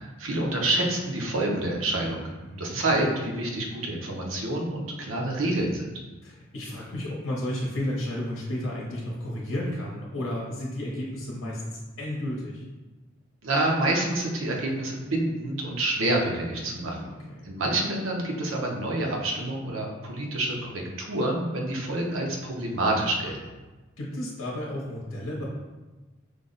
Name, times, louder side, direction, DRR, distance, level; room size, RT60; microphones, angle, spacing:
voice 1, 0.0-2.3 2.6-5.9 13.4-17.0 17.4-23.4, right 1 dB, 70° right, -1 dB, 0.8 m, -27 dB
voice 2, 2.4-2.8 6.2-12.6 16.7-17.4 24.0-25.4, left 1 dB, 75° left, -4 dB, 0.8 m, -33 dB
5.0 x 2.0 x 3.9 m, 1.2 s
head